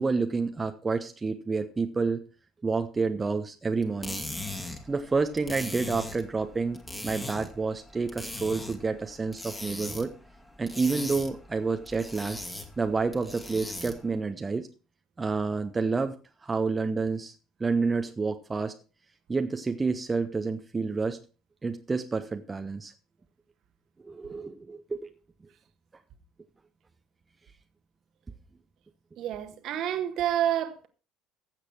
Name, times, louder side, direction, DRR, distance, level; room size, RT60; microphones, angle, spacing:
voice 1, 0.0-2.2 2.6-4.2 4.9-10.1 10.6-12.4 12.8-14.7 15.2-17.3 17.6-18.8 19.3-21.2 21.6-22.9 24.0-25.1, right 4 dB, 20° right, 1.0 m, -29 dB
sound 1, 3.8-14.1, left 2 dB, 10° left, 2.5 m, -40 dB
voice 2, 29.2-30.9, right 11 dB, 50° right, 1.6 m, -28 dB
15.0 x 8.1 x 4.5 m
figure-of-eight pair, 55°, 0 cm